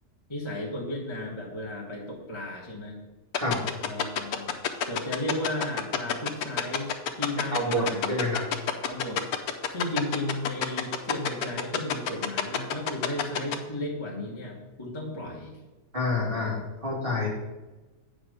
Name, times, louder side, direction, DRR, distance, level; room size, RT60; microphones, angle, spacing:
voice 1, 0.3-3.0 3.8-4.5 4.9-8.2 8.8-9.2 9.7-15.6, left 1 dB, 20° left, -4 dB, 1.2 m, -34 dB
sound 1, 3.3-13.6, left 9 dB, 65° left, 1.2 m, -26 dB
voice 2, 7.5-8.4 15.9-17.3, left 1 dB, 30° right, -4 dB, 2.7 m, -28 dB
9.0 x 5.0 x 6.5 m, 1.1 s
omnidirectional pair, 1.9 m